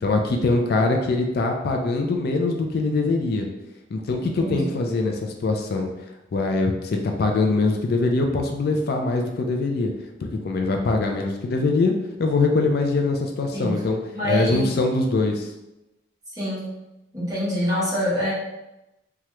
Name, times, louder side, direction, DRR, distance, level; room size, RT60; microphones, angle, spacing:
voice 1, 0.0-3.5 3.9-5.9 6.3-9.9 10.4-11.9 12.2-14.0 14.2-15.5, left 3 dB, 55° left, 3 dB, 0.4 m, -23 dB
voice 2, 4.2-4.8 13.5-13.8 14.1-14.7 16.3-16.7 17.1-18.3, left 1 dB, 20° right, -8 dB, 1.1 m, -26 dB
2.8 x 2.3 x 3.1 m, 0.95 s
head